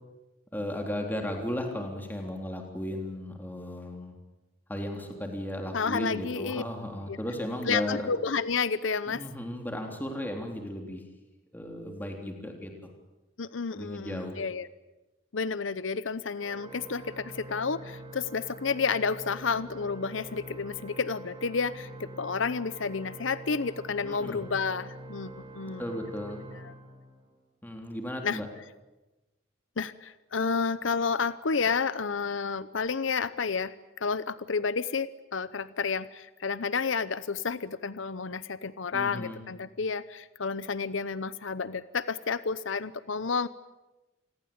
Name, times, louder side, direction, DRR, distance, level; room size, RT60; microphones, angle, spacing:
voice 1, 0.5-4.2 4.7-8.1 9.1-11.0 11.5-12.7 13.7-14.4 24.0-24.5 25.8-26.4 27.6-28.5 38.9-39.4, left 1 dB, 10° left, 2 dB, 3.5 m, -35 dB
voice 2, 5.7-6.6 7.1-7.2 7.6-9.2 13.4-14.7 15.3-25.8 28.2-28.4 29.8-43.5, left 5 dB, 80° left, 15 dB, 0.8 m, -30 dB
Organ, 16.4-27.5, right 2 dB, 25° right, 4.6 m, -45 dB
28.0 x 21.5 x 8.8 m, 1.1 s
head